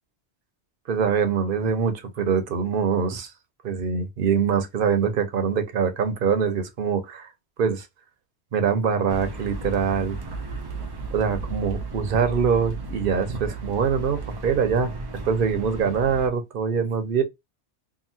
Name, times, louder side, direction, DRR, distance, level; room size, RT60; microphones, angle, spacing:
voice 1, 0.9-3.3 3.6-7.3 7.6-7.9 8.5-10.2 11.1-14.9 15.2-17.2, right 6 dB, 55° right, 0.8 m, -24 dB
sound 1, 9.1-16.3, right 3 dB, 35° right, 0.4 m, -34 dB
2.9 x 2.6 x 2.6 m
omnidirectional pair, 1.1 m